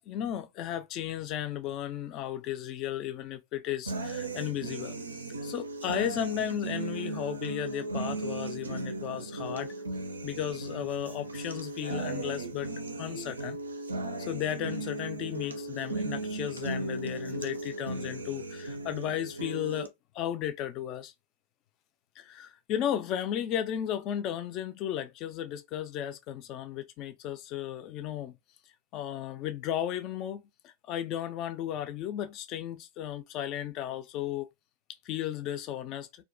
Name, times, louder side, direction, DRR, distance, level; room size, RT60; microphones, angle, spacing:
voice 1, 0.0-5.0 5.4-9.7 10.2-12.7 13.0-13.6 14.2-19.9 20.1-21.1 22.2-28.4 28.9-34.5 35.0-36.1, left 11 dB, 40° left, 0.4 m, -34 dB
sound 1, 3.9-19.9, right 2 dB, 75° right, 0.4 m, -36 dB
2.3 x 2.2 x 2.4 m
figure-of-eight pair, 90°, 0 cm